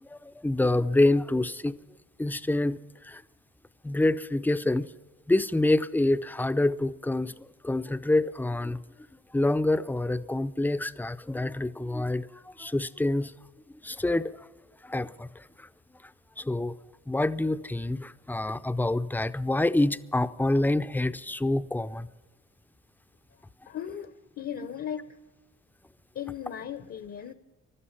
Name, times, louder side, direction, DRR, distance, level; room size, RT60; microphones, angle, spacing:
voice 1, 0.0-1.8 2.2-3.2 3.8-4.9 5.3-8.8 9.3-13.3 13.8-14.5 14.8-15.7 16.4-16.8 17.1-22.1, left 2 dB, 5° left, 0.5 m, -27 dB
voice 2, 23.3-25.2 26.1-27.3, left 9 dB, 50° left, 0.8 m, -37 dB
15.5 x 12.0 x 5.8 m
cardioid pair, 90°, 30 cm